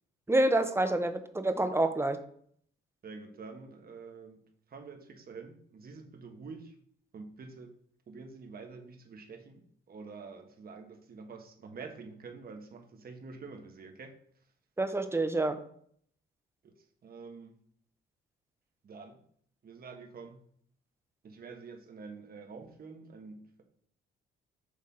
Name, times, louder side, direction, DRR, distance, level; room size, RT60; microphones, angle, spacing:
voice 1, 0.3-2.2 14.8-15.6, right 2 dB, 10° right, 9 dB, 0.7 m, -27 dB
voice 2, 3.0-4.4 4.7-6.7 7.1-7.8 8.1-14.2 16.6-16.7 17.0-17.6 18.8-19.2 19.6-20.4 21.2-23.6, right 4 dB, 50° right, 4 dB, 1.3 m, -47 dB
6.6 x 3.5 x 5.4 m, 0.62 s
cardioid pair, 90°, 20 cm